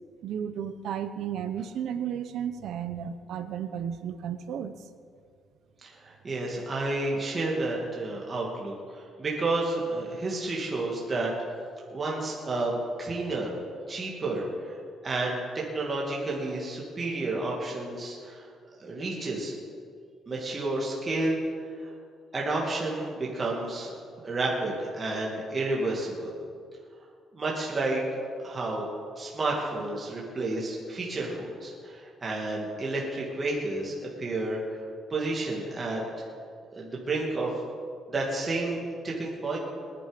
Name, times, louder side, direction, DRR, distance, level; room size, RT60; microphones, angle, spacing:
voice 1, 0.2-4.8, right 8 dB, 70° right, 10 dB, 0.9 m, -33 dB
voice 2, 6.0-11.3 11.9-13.5 13.9-14.7 15.0-18.5 18.8-19.5 20.3-21.4 21.8-21.9 22.3-23.9 24.2-26.3 27.3-28.0 28.4-28.9 29.2-34.8 35.1-36.0 36.7-37.5 38.1-39.6, right 2 dB, 25° right, -3 dB, 2.4 m, -31 dB
19.5 x 11.0 x 5.3 m, 2.2 s
cardioid pair, 160°, 0 cm